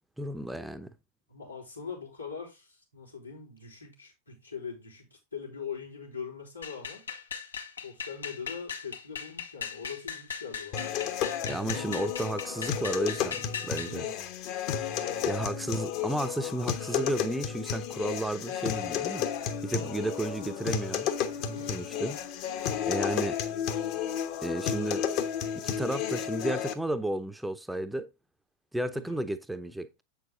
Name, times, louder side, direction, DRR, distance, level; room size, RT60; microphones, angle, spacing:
voice 1, 0.2-0.9 11.4-14.1 15.3-19.3 19.6-21.1 21.7-22.2 22.5-22.6 22.9-23.4 24.4-25.1 25.5-28.1 28.7-30.0, right 1 dB, 5° right, 0.7 m, -33 dB
voice 2, 1.3-7.1 7.8-10.9 11.4-11.9 13.8-14.3 14.9-15.3 19.7-20.0 21.4-21.7 22.6-22.9 28.9-29.2, left 6 dB, 90° left, 4.6 m, -42 dB
sound 1, 6.6-14.0, left 6 dB, 70° left, 1.1 m, -39 dB
sound 2, 10.7-26.7, left 8 dB, 45° left, 1.2 m, -32 dB
8.2 x 6.8 x 3.9 m
figure-of-eight pair, 90°, 0 cm